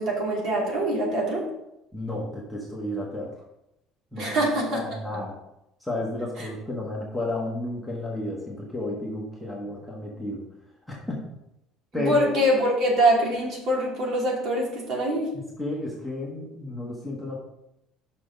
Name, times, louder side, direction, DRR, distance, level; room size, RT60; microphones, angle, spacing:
voice 1, 0.0-1.5 4.2-4.8 5.1-5.2 6.4-6.5 11.9-15.3, right 1 dB, 50° right, -2 dB, 2.7 m, -24 dB
voice 2, 1.9-3.3 4.1-4.3 4.8-5.4 5.8-10.5 10.9-11.2 11.9-12.4 15.6-17.4, left 2 dB, ahead, -4 dB, 1.4 m, -32 dB
6.1 x 5.9 x 5.3 m, 0.85 s
cardioid pair, 155°, 0 cm